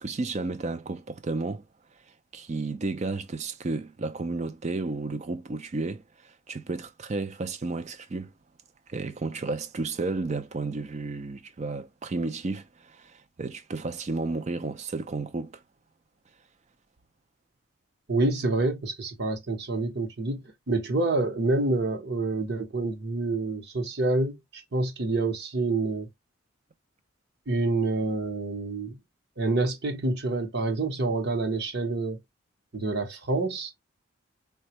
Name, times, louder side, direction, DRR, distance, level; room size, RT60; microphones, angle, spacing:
voice 1, 0.0-1.7 2.3-8.3 8.9-15.6, right 3 dB, 35° right, 0.4 m, -32 dB
voice 2, 18.1-24.4 24.7-26.1 27.5-29.0 29.4-32.2 32.7-33.7, right 2 dB, 55° right, 0.9 m, -27 dB
4.2 x 2.2 x 2.9 m
head